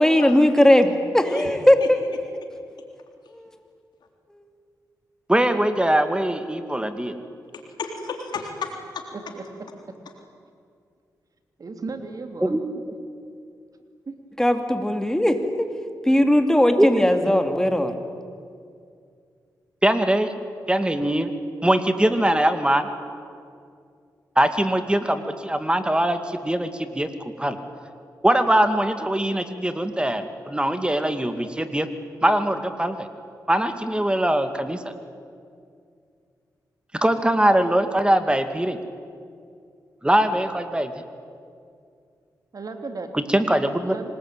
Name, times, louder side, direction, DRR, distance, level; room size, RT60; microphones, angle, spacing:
voice 1, 0.0-2.0 3.3-3.5 14.4-15.4 16.0-17.9, left 1 dB, 10° left, 6 dB, 3.0 m, -18 dB
voice 2, 5.3-7.1 12.4-12.6 16.8-17.1 19.8-20.3 20.7-21.3 21.6-22.9 24.4-27.6 28.2-31.9 32.2-33.1 33.5-34.9 37.0-38.8 40.0-40.9 43.1-43.9, right 1 dB, 15° right, 8 dB, 2.3 m, -22 dB
voice 3, 7.5-9.1, left 5 dB, 80° left, 3 dB, 3.6 m, -33 dB
voice 4, 9.1-9.4 11.6-12.5 14.1-14.2 42.5-43.1 43.8-44.1, right 3 dB, 55° right, 6 dB, 3.0 m, -35 dB
26.0 x 20.0 x 9.2 m, 2.3 s
cardioid pair, 50°, 7 cm